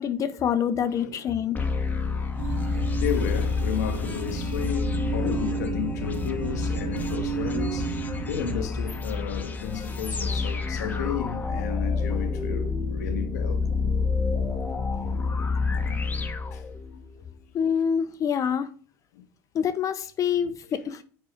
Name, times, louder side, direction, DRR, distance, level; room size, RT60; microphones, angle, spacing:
voice 1, 0.0-1.6 17.5-18.7 19.5-21.0, left 8 dB, 40° left, 0.7 m, -26 dB
voice 2, 0.8-1.3 2.1-2.3 2.9-13.7 14.6-14.7 15.9-16.6 17.2-17.3 19.1-19.2, left 8 dB, 80° left, 1.0 m, -33 dB
sound 1, 1.5-17.2, left 4 dB, 20° left, 1.0 m, -29 dB
sound 2, 2.4-8.6, right 5 dB, 75° right, 1.7 m, -32 dB
7.5 x 4.7 x 5.1 m
hypercardioid pair, 95°, 9 cm